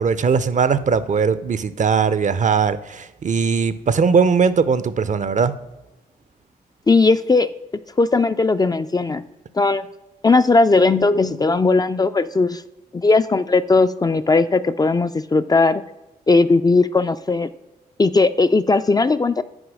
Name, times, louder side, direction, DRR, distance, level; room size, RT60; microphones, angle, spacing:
voice 1, 0.0-5.5, right 5 dB, 45° right, 0.5 m, -19 dB
voice 2, 6.9-7.5 8.0-9.2 9.5-9.9 10.2-12.6 12.9-15.8 16.3-17.5 18.0-19.4, left 3 dB, 20° left, 0.3 m, -17 dB
6.3 x 4.6 x 6.1 m
supercardioid pair, 50°, 17 cm